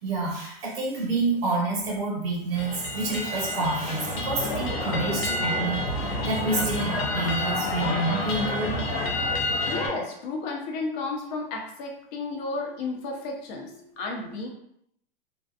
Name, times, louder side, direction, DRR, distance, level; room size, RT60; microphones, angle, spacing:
voice 1, 0.0-8.8, right 3 dB, 75° right, -3 dB, 1.1 m, -28 dB
sound 1, 2.5-9.9, left 2 dB, 80° left, 0.7 m, -29 dB
voice 2, 9.7-14.5, left 3 dB, 45° left, 0 dB, 0.8 m, -33 dB
2.6 x 2.3 x 2.4 m, 0.74 s
hypercardioid pair, 110°, 30 cm